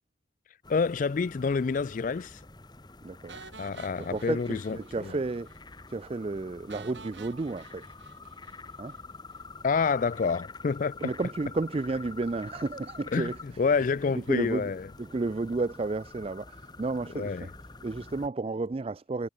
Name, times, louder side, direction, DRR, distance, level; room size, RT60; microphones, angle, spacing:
sound 1, 0.6-18.3, left 3 dB, 20° left, 1.5 m, -47 dB
voice 1, 0.7-2.4 3.6-4.8 5.0-5.1 9.6-11.0 13.1-14.8 17.1-17.5, left 5 dB, 40° left, 0.3 m, -28 dB
voice 2, 3.0-3.4 4.0-5.5 5.9-7.8 8.8-9.0 11.0-13.4 14.1-14.7 15.0-17.5 17.8-19.3, right 3 dB, 30° right, 0.4 m, -32 dB
sound 2, 3.3-5.2 5.5-5.6 5.9-6.0 6.7-9.0, right 4 dB, 70° right, 5.5 m, -50 dB
head